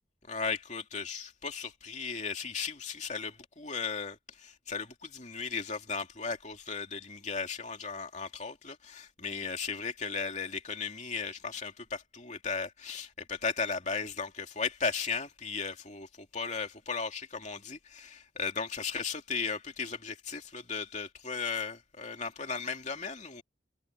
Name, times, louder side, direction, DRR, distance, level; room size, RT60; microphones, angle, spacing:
voice 1, 0.3-23.4, left 5 dB, 40° left, 2.8 m, -36 dB
head